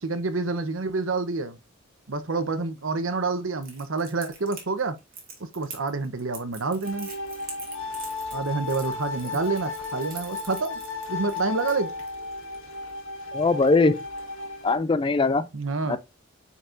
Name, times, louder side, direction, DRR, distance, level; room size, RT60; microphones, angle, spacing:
voice 1, 0.0-1.6 2.1-5.0 5.5-7.1 8.3-11.9 15.5-16.0, right 3 dB, 80° right, 1.0 m, -28 dB
Crackle, 3.6-12.1, right 5 dB, 45° right, 2.6 m, -43 dB
sound 1, 6.8-14.8, left 3 dB, 85° left, 1.6 m, -35 dB
voice 2, 13.3-14.0 14.6-15.5 15.9-16.0, left 3 dB, 25° left, 0.4 m, -21 dB
9.3 x 4.2 x 2.6 m
head